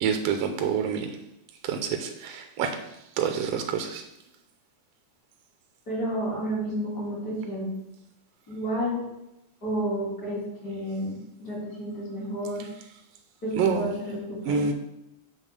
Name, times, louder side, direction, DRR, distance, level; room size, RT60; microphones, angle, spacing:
voice 1, 0.0-1.1 1.6-2.8 3.2-4.0 13.6-13.9 14.5-14.7, right 6 dB, 75° right, 5 dB, 1.6 m, -27 dB
voice 2, 5.9-7.7 8.5-9.0 9.6-12.7 13.4-14.7, equal, 30° left, -6 dB, 3.2 m, -31 dB
8.2 x 3.6 x 6.7 m, 0.89 s
omnidirectional pair, 3.3 m